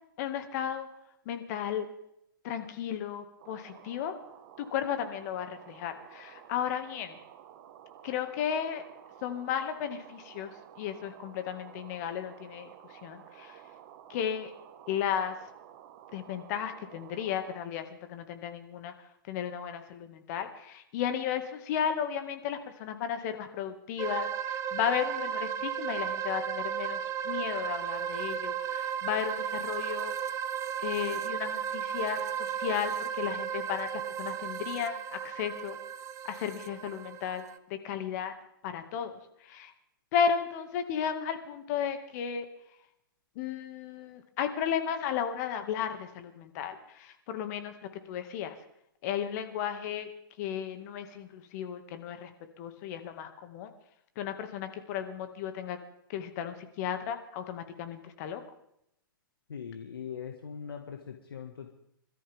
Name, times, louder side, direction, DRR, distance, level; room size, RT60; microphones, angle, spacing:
voice 1, 0.2-0.9 1.3-1.9 2.4-4.1 4.6-7.2 8.0-8.8 9.2-13.6 14.1-14.5 14.9-15.4 16.1-18.9 19.3-30.1 30.8-35.8 36.3-38.3 38.6-39.7 40.1-42.5 43.4-47.7 48.1-48.6 49.0-50.1 50.4-52.3 52.6-53.7 54.2-55.8 56.1-58.4, left 8 dB, 45° left, 7 dB, 2.1 m, -34 dB
sound 1, 3.4-17.6, right 10 dB, 45° right, 1.6 m, -52 dB
sound 2, 24.0-37.6, right 9 dB, 25° right, 0.9 m, -34 dB
voice 2, 59.5-61.7, left 7 dB, 80° left, 4 dB, 1.9 m, -41 dB
27.5 x 13.5 x 3.6 m, 0.76 s
hypercardioid pair, 125°, 12 cm